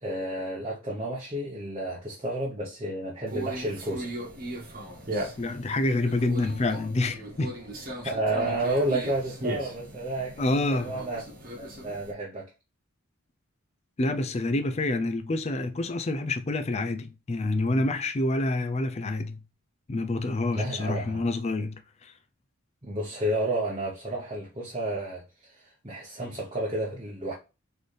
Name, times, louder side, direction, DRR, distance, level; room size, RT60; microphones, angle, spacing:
voice 1, 0.0-4.1 8.0-10.4 10.7-11.2 11.6-12.5 20.5-21.2 22.8-27.3, right 1 dB, 25° right, 0.9 m, -31 dB
Conversation, 3.3-12.1, right 1 dB, 40° right, 1.2 m, -37 dB
voice 2, 5.4-7.5 10.4-10.9 14.0-19.4 19.9-22.1, left 2 dB, 30° left, 0.4 m, -27 dB
4.1 x 3.8 x 3.2 m
head